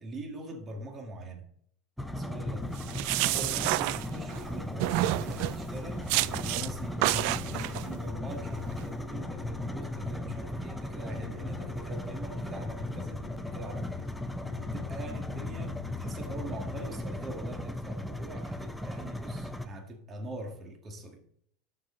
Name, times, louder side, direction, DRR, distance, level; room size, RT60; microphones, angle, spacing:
voice 1, 0.0-1.5 2.1-21.2, right 1 dB, 30° right, 1.9 m, -43 dB
sound 1, 2.0-17.0, left 16 dB, 65° left, 0.6 m, -45 dB
sound 2, 2.0-19.7, equal, ahead, 0.8 m, -37 dB
folding open some paper, 2.8-4.4 4.8-5.6 6.1-6.7 7.0-7.8, right 18 dB, 65° right, 0.3 m, -29 dB
11.5 x 6.8 x 3.9 m
supercardioid pair, 125°, 0 cm